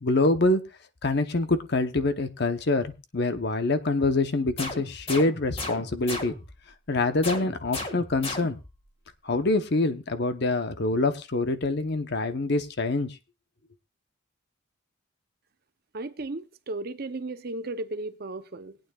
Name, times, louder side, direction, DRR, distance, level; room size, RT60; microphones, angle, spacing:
voice 1, 0.0-0.6 1.0-6.3 6.9-8.6 9.2-13.2, left 2 dB, 55° left, 0.9 m, -25 dB
sound 1, 4.6-6.6 7.2-8.8, left 2 dB, 30° left, 1.8 m, -36 dB
voice 2, 15.9-18.8, right 2 dB, 50° right, 0.7 m, -35 dB
21.0 x 9.0 x 2.4 m
head